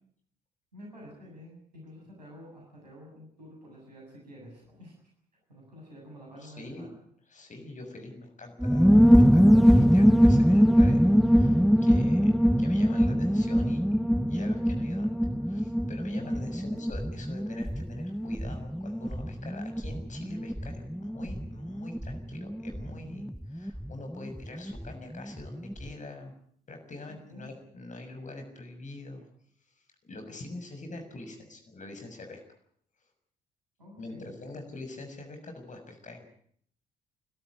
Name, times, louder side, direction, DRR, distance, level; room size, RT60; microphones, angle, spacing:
voice 1, 0.7-5.0 5.5-7.0 16.5-17.0 27.1-27.6 33.8-34.7, equal, 85° right, -2 dB, 7.1 m, -49 dB
voice 2, 6.4-6.9 7.3-14.0 14.3-15.1 15.4-26.3 26.7-29.2 30.0-32.4 34.0-36.3, left 2 dB, 35° left, 5 dB, 6.6 m, -44 dB
sound 1, 8.6-24.9 25.1-25.2 25.5-25.9, equal, ahead, 0.9 m, -23 dB
29.0 x 13.0 x 9.7 m, 0.65 s
figure-of-eight pair, 45°, 21 cm